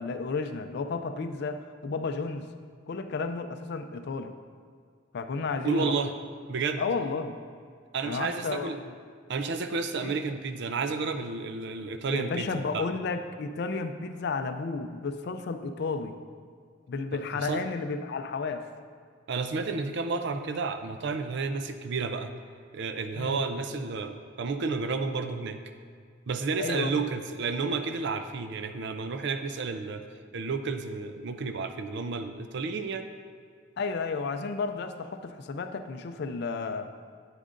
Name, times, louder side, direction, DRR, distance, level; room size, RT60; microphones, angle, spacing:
voice 1, 0.0-2.5 2.9-4.3 5.1-6.0 6.8-7.4 8.0-8.9 10.0-10.2 12.0-16.1 16.9-18.7 23.1-23.4 26.6-26.9 33.8-36.9, left 4 dB, 60° left, 8 dB, 0.4 m, -32 dB
voice 2, 5.6-6.1 6.5-6.8 7.9-8.8 9.3-12.5 12.7-12.9 17.1-17.6 19.3-22.3 22.7-25.6 26.3-30.0 30.3-33.1, right 4 dB, 60° right, 8 dB, 0.5 m, -31 dB
9.9 x 9.2 x 2.5 m, 2.1 s
head